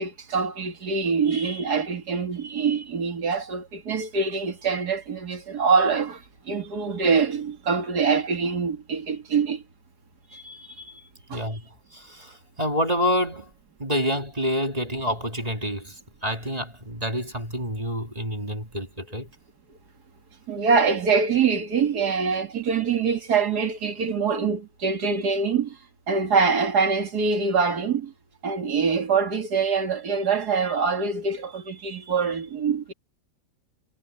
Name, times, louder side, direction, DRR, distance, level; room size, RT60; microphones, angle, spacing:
voice 1, 0.0-9.6 10.3-11.0 11.3-11.4 20.5-25.8 26.1-28.1 28.4-32.9, right 5 dB, 60° right, 2.6 m, -24 dB
voice 2, 11.3-11.6 11.9-13.5 13.8-19.3, equal, 20° right, 2.9 m, -28 dB
omnidirectional pair, 1.9 m